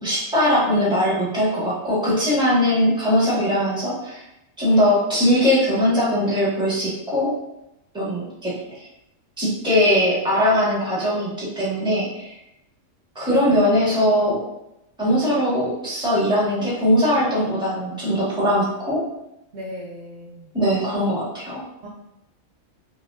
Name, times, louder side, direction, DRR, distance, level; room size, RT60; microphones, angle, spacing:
voice 1, 0.0-4.2 4.6-7.3 7.9-8.9 9.4-12.4 13.1-14.4 15.0-19.0 20.5-21.6, equal, 5° right, -8 dB, 1.2 m, -20 dB
voice 2, 19.5-20.5 21.8-21.9, equal, 65° right, -5 dB, 0.8 m, -36 dB
5.3 x 2.2 x 2.4 m, 0.87 s
omnidirectional pair, 1.4 m